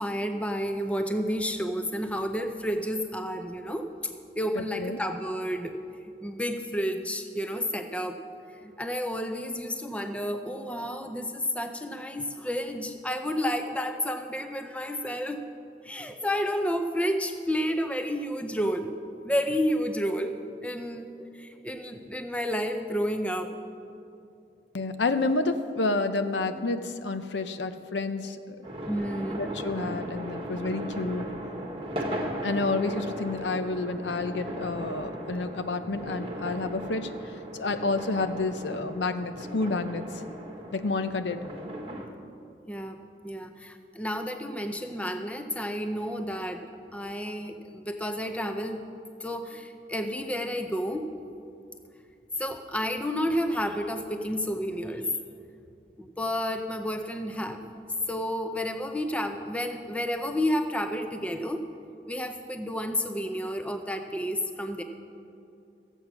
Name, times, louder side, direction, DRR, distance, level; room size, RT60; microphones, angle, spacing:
voice 1, 0.0-5.7 6.0-8.2 8.5-15.4 15.8-18.9 19.2-20.3 20.6-21.1 21.3-23.5 28.9-29.6 42.7-43.0 43.2-46.6 46.9-48.8 49.2-51.1 52.4-55.1 56.0-57.6 58.1-61.6 62.1-64.8, equal, 5° left, 6 dB, 0.5 m, -31 dB
voice 2, 4.6-5.0 24.7-28.6 29.4-31.2 32.4-37.1 37.5-40.0 40.7-41.4, left 3 dB, 85° left, 10 dB, 0.6 m, -29 dB
sound 1, 28.6-42.1, right 1 dB, 30° right, 1.2 m, -37 dB
14.0 x 8.1 x 6.0 m, 2.6 s
head